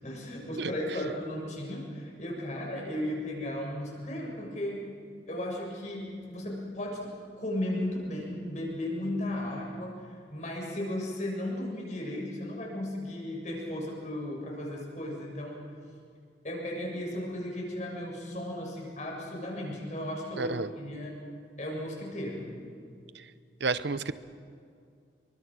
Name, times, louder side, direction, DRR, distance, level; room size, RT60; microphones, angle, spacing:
voice 1, 0.0-4.8 5.3-10.0 10.3-15.6 16.4-21.2 21.6-22.6, left 1 dB, 40° left, -1 dB, 6.9 m, -35 dB
voice 2, 20.4-20.7 23.1-23.2 23.6-24.1, right 3 dB, 75° right, 14 dB, 0.9 m, -30 dB
27.5 x 24.5 x 6.3 m, 2.3 s
head